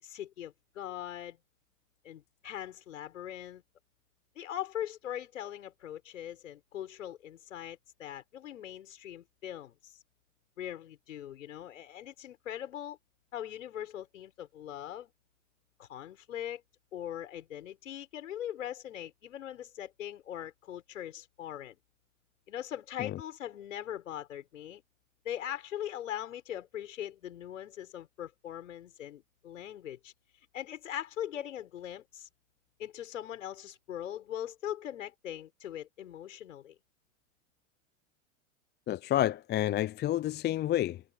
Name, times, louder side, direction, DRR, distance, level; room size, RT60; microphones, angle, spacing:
voice 1, 0.0-1.4 2.0-3.6 4.3-10.0 10.6-13.0 13.3-15.1 15.8-16.6 16.9-21.8 22.5-24.8 25.2-30.1 30.5-32.3 32.8-36.8, left 11 dB, 80° left, 6.3 m, -41 dB
voice 2, 38.9-41.0, left 13 dB, 25° left, 0.6 m, -29 dB
hypercardioid pair, 100°, 38 cm